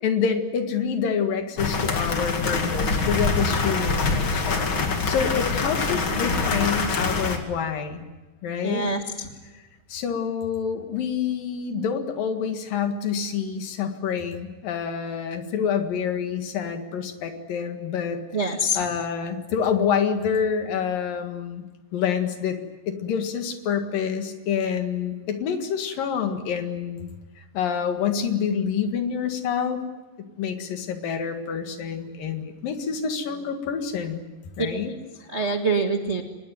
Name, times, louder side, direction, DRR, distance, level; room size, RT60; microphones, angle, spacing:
voice 1, 0.0-8.0 8.4-8.9 9.9-18.2 18.7-21.6 21.9-22.6 22.9-27.1 27.4-29.8 30.4-34.2 34.6-34.9, left 7 dB, 80° left, 6 dB, 3.6 m, -27 dB
sound 1, 1.6-7.4, left 4 dB, 40° left, 2.7 m, -24 dB
voice 2, 8.6-9.3 18.3-18.8 35.3-36.2, right 2 dB, 45° right, 3 dB, 0.8 m, -25 dB
24.5 x 20.5 x 9.4 m, 1.2 s
omnidirectional pair, 3.9 m